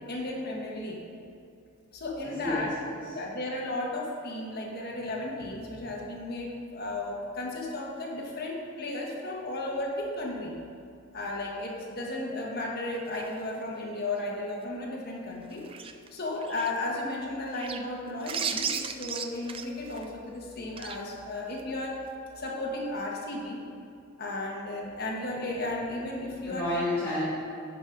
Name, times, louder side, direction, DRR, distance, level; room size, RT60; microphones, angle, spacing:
voice 1, 0.1-1.0 1.9-2.7 3.1-10.5 11.1-15.7 16.1-21.9 22.4-23.6 24.2-26.7, left 2 dB, 45° left, -2 dB, 1.4 m, -34 dB
voice 2, 2.4-3.1 26.4-27.2, left 1 dB, 10° left, -12 dB, 1.7 m, -30 dB
sound 1, 13.1-13.8 15.5-16.7 17.5-17.8 18.2-20.0 20.8-21.0 21.6-21.7, right 7 dB, 25° right, 0.3 m, -35 dB
10.5 x 5.3 x 5.0 m, 2.5 s
head